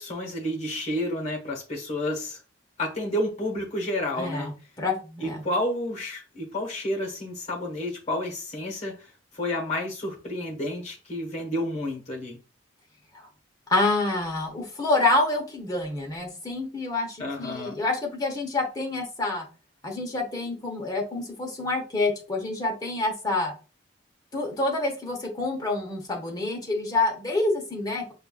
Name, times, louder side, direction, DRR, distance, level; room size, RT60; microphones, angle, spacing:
voice 1, 0.0-2.4 2.8-4.5 5.2-12.4 17.2-17.8, left 1 dB, 35° left, 1.2 m, -30 dB
voice 2, 4.2-4.5 4.8-5.4 13.1-13.3 13.7-19.5 19.8-23.5 24.3-28.1, left 2 dB, 20° left, 0.9 m, -27 dB
5.4 x 2.4 x 2.3 m
head